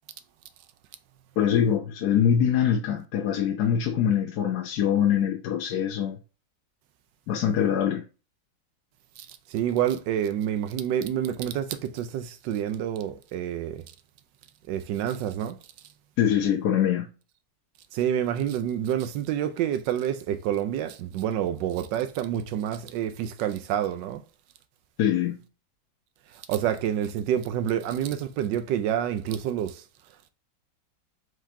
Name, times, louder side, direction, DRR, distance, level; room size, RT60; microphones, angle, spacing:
voice 1, 1.4-6.2 7.3-8.0 16.2-17.1 25.0-25.4, left 9 dB, 65° left, 1.0 m, -24 dB
voice 2, 9.2-13.8 14.7-15.6 17.9-24.2 26.5-29.8, right 10 dB, 75° right, 1.2 m, -28 dB
4.7 x 3.8 x 2.7 m
omnidirectional pair, 2.1 m